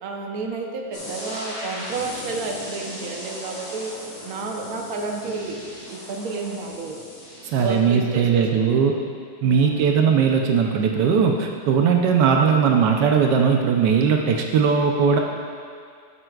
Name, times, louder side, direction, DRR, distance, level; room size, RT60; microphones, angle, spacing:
voice 1, 0.0-3.9 4.2-7.0 7.6-8.8 9.4-9.7, right 3 dB, 60° right, 1 dB, 1.2 m, -31 dB
sound 1, 0.9-7.7, left 1 dB, 45° left, 2.2 m, -37 dB
voice 2, 7.5-8.9 9.4-15.2, right 6 dB, 80° right, 2 dB, 1.3 m, -19 dB
14.0 x 7.7 x 2.4 m, 2.2 s
omnidirectional pair, 1.8 m